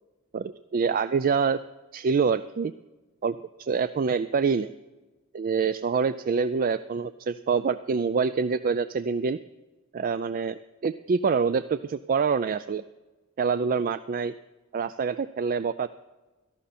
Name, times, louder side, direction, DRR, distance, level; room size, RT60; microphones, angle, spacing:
voice 1, 0.3-1.6 1.9-2.7 3.2-4.7 5.3-9.4 9.9-12.8 13.4-14.3 14.7-15.9, right 5 dB, 40° right, 13 dB, 0.4 m, -26 dB
17.0 x 14.0 x 4.3 m, 1.2 s
head